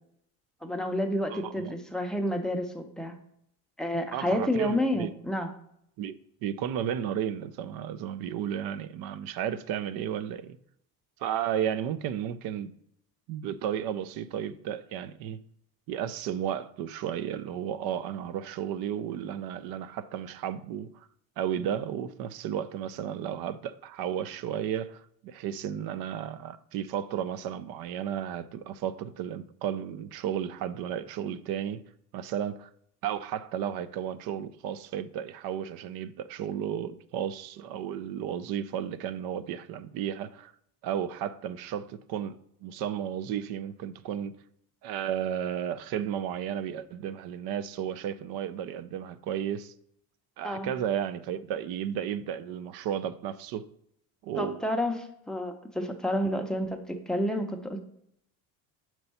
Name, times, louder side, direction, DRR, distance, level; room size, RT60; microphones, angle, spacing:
voice 1, 0.6-3.1 3.8-5.5 50.4-50.7 54.4-55.0 55.3-57.8, equal, ahead, 0.5 m, -29 dB
voice 2, 1.3-1.7 4.1-5.1 6.0-6.1 6.4-10.6 11.2-12.7 13.3-15.4 15.9-21.1 21.4-31.8 32.1-32.7 33.0-40.5 40.8-44.3 44.8-49.7 50.4-53.6 54.2-54.6 56.3-56.4, right 9 dB, 70° right, 0.5 m, -33 dB
6.8 x 4.6 x 4.1 m
cardioid pair, 140°, 38 cm